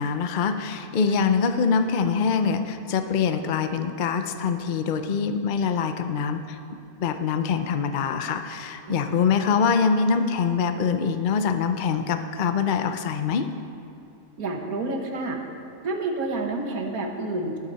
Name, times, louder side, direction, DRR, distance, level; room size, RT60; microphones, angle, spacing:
voice 1, 0.0-6.6 7.0-13.4, left 6 dB, 65° left, 8 dB, 0.5 m, -24 dB
voice 2, 8.9-9.3 14.4-15.4 15.8-17.6, right 2 dB, 70° right, 2 dB, 1.8 m, -29 dB
20.0 x 8.8 x 4.1 m, 2.6 s
omnidirectional pair, 1.6 m